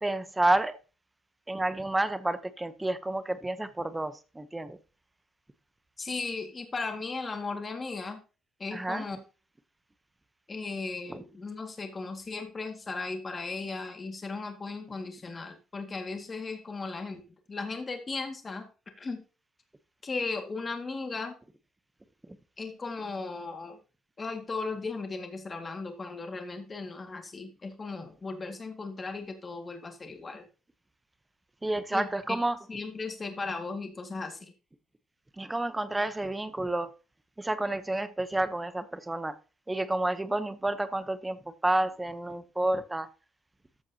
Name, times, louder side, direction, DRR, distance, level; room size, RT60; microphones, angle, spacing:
voice 1, 0.0-0.8 1.5-4.8 8.7-9.0 11.1-11.2 31.6-32.6 35.4-36.9 37.4-39.4 39.7-43.1, right 2 dB, 10° right, 0.8 m, -30 dB
voice 2, 6.0-8.2 8.6-9.2 10.5-17.2 17.5-18.7 19.0-19.2 20.0-21.3 22.6-23.8 24.2-30.4 31.9-32.1 32.7-34.5, left 3 dB, 25° left, 1.9 m, -36 dB
13.5 x 7.8 x 2.8 m
cardioid pair, 140°, 0 cm